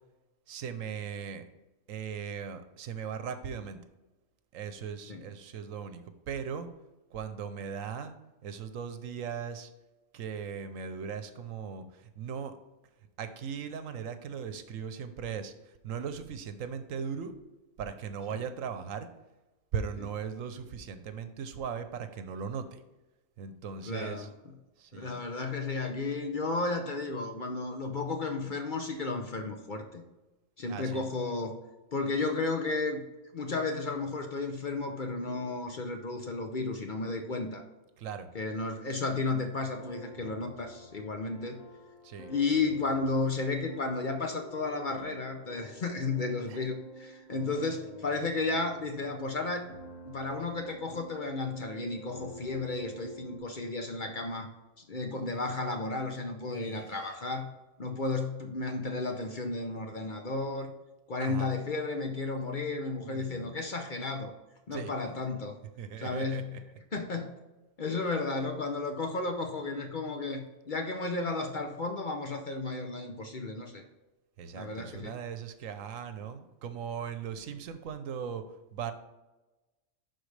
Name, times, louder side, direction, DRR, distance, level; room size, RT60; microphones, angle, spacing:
voice 1, 0.5-1.4 1.9-3.8 4.5-6.0 6.3-6.7 7.1-8.2 8.4-9.7 10.1-12.6 13.2-17.3 17.8-19.1 19.7-22.8 23.4-24.3 24.8-25.2 28.4-28.5 30.7-31.0 38.0-38.3 42.0-42.3 46.5-46.6 56.5-57.1 61.2-61.5 63.0-63.5 64.7-64.9 65.8-66.6 74.4-78.4 78.7-78.9, right 7 dB, 80° right, 10 dB, 1.1 m, -38 dB
voice 2, 23.9-24.3 24.9-30.0 30.6-31.6 31.9-33.0 33.3-37.6 38.3-41.6 42.3-49.7 50.1-54.5 54.9-57.5 57.8-60.7 61.1-64.3 64.7-65.6 66.0-66.6 66.9-67.3 67.8-73.8 74.5-75.2, left 3 dB, 45° left, 4 dB, 0.7 m, -33 dB
sound 1, 39.6-53.4, equal, 70° left, 1.5 m, -49 dB
11.5 x 4.2 x 3.3 m, 1.1 s
omnidirectional pair, 1.4 m